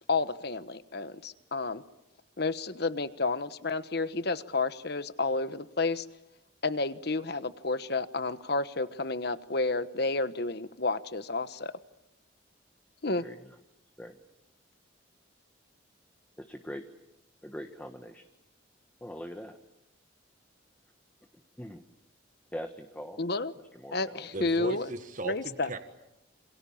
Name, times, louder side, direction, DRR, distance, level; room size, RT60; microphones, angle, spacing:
voice 1, 0.1-1.8 2.4-6.1 6.6-11.7 13.0-13.2 23.2-23.5 23.9-24.9 25.2-25.7, left 3 dB, 55° left, 13 dB, 1.2 m, -31 dB
voice 2, 16.4-16.8 17.4-18.2 19.0-19.6 21.6-21.8 22.5-23.2 23.7-24.3, equal, 10° left, 6 dB, 1.4 m, -42 dB
voice 3, 24.3-25.8, right 2 dB, 40° right, 8 dB, 1.6 m, -37 dB
28.0 x 27.0 x 7.3 m, 0.91 s
head